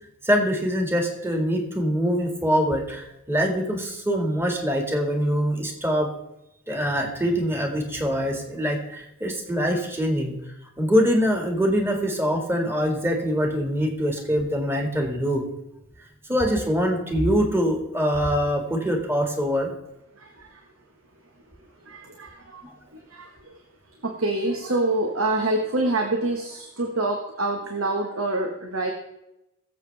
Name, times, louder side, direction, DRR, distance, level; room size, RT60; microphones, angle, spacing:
voice 1, 0.2-6.1 6.7-10.4 10.8-15.4 16.3-19.7 22.6-22.7, equal, 10° right, 2 dB, 2.0 m, -24 dB
voice 2, 20.1-20.7 21.2-28.9, right 2 dB, 85° right, 3 dB, 1.5 m, -27 dB
22.0 x 7.6 x 3.5 m, 0.89 s
head